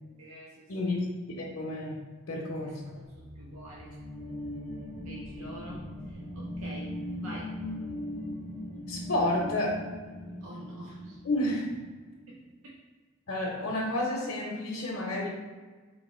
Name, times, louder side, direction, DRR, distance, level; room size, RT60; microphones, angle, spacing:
voice 1, 0.2-1.1 2.6-4.0 5.0-7.6 10.4-11.2 12.3-12.8, right 1 dB, 85° right, -4 dB, 0.6 m, -47 dB
voice 2, 0.7-1.0 1.4-2.0 2.3-2.9 8.9-9.8 11.2-11.7 13.3-15.3, left 1 dB, 65° left, -4 dB, 0.7 m, -30 dB
sound 1, 2.9-12.0, left 1 dB, 25° right, 0.6 m, -39 dB
3.2 x 2.9 x 4.2 m, 1.4 s
head